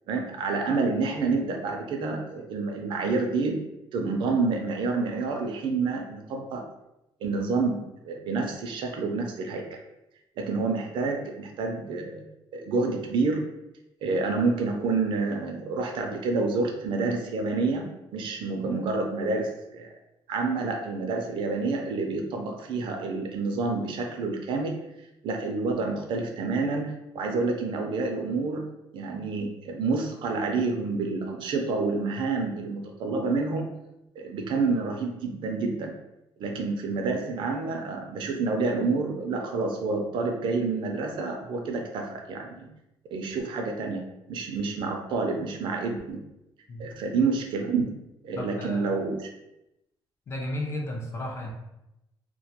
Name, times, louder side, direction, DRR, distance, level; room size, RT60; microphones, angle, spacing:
voice 1, 0.1-3.6 3.9-6.6 7.2-9.6 10.4-12.2 12.5-13.4 14.0-17.9 18.1-19.9 20.3-24.7 25.2-28.7 28.9-33.7 34.2-35.9 36.4-42.7 43.1-44.0 44.3-46.2 46.8-47.9 48.2-49.2, right 3 dB, 65° right, 3 dB, 0.4 m, -28 dB
voice 2, 48.4-48.9 50.3-51.5, left 1 dB, 30° left, 0 dB, 0.4 m, -33 dB
2.2 x 2.2 x 2.8 m, 0.90 s
cardioid pair, 175°, 9 cm